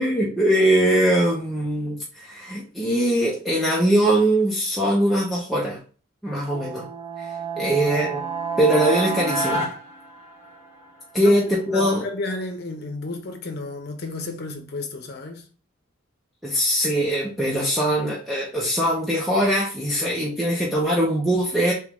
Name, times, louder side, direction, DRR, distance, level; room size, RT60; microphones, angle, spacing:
voice 1, 0.0-5.8 6.2-6.8 7.2-8.2 8.6-9.6 11.1-12.1 16.4-21.7, right 1 dB, ahead, 0.7 m, -21 dB
sound 1, 6.5-10.8, right 4 dB, 15° right, 1.6 m, -29 dB
voice 2, 11.7-15.5, left 2 dB, 55° left, 0.8 m, -32 dB
3.6 x 3.0 x 3.4 m
head